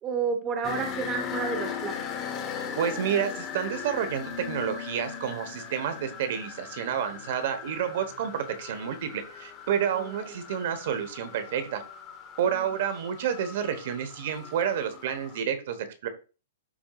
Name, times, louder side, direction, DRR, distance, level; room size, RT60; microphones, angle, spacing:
voice 1, 0.0-2.0 9.9-10.4 12.5-12.7, right 6 dB, 20° right, 4 dB, 1.1 m, -31 dB
sound 1, 0.6-15.4, left 7 dB, 20° left, 1.1 m, -39 dB
voice 2, 2.7-11.8 12.4-16.1, right 8 dB, 50° right, 9 dB, 1.2 m, -29 dB
12.5 x 4.3 x 2.4 m, 0.33 s
hypercardioid pair, 165°, 0 cm